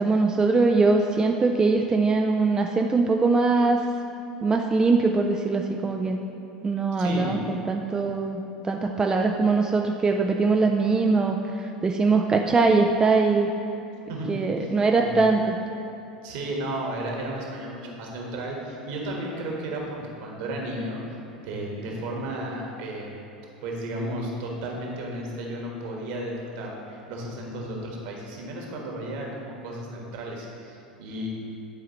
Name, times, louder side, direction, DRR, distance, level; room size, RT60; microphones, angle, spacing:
voice 1, 0.0-3.8 4.4-6.2 6.6-13.5 14.3-15.5, right 3 dB, 15° right, 2 dB, 0.4 m, -22 dB
voice 2, 7.0-7.4 14.1-14.7 15.0-15.1 16.2-21.0 21.3-23.2 23.6-31.3, right 1 dB, 55° right, -1 dB, 1.4 m, -33 dB
10.5 x 4.7 x 3.0 m, 2.8 s
figure-of-eight pair, 80°, 4 cm